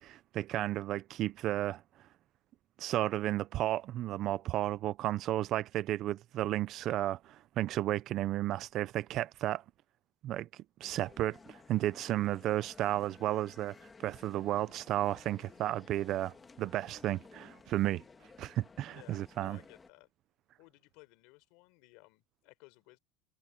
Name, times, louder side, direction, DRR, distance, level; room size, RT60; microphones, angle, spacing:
voice 1, 0.0-1.8 2.8-9.6 10.2-13.8 14.0-18.0 18.4-19.6, right 14 dB, 35° right, 0.4 m, -33 dB
sound 1, 10.8-19.9, left 4 dB, 15° left, 1.4 m, -56 dB
voice 2, 18.9-20.1 20.6-23.0, left 26 dB, 55° left, 4.5 m, -58 dB
cardioid pair, 175°, 0 cm